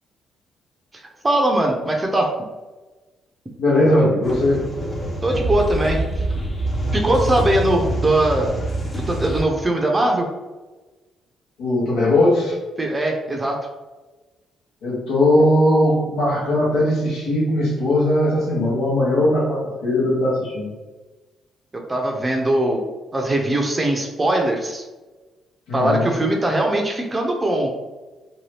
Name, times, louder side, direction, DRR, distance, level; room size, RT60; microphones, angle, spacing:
voice 1, 1.2-2.3 5.2-6.0 6.9-8.5 8.9-10.3 12.8-13.7 21.7-22.8 23.1-24.8 25.7-27.7, right 1 dB, 25° right, 1 dB, 0.5 m, -20 dB
voice 2, 3.6-4.6 11.6-12.5 14.8-20.7 25.7-26.1, left 1 dB, 90° left, -8 dB, 0.9 m, -19 dB
sound 1, 4.2-9.4, right 1 dB, 30° left, 0.7 m, -25 dB
2.7 x 2.3 x 3.2 m, 1.2 s
cardioid pair, 90°, 0 cm